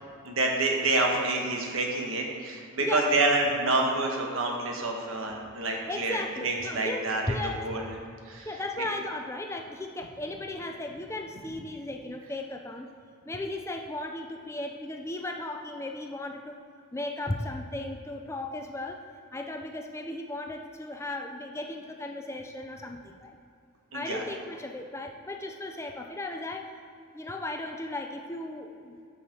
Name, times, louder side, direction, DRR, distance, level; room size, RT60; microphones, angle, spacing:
voice 1, 0.2-7.9 8.3-8.5 8.8-8.9 23.9-24.2, right 2 dB, 70° right, 1 dB, 1.2 m, -28 dB
voice 2, 2.8-3.1 5.9-7.9 8.5-12.9 13.3-16.6 16.9-19.1 19.3-23.3 23.9-26.7 27.1-29.0, left 2 dB, 10° left, 3 dB, 0.4 m, -36 dB
8.5 x 5.6 x 5.1 m, 2.4 s
head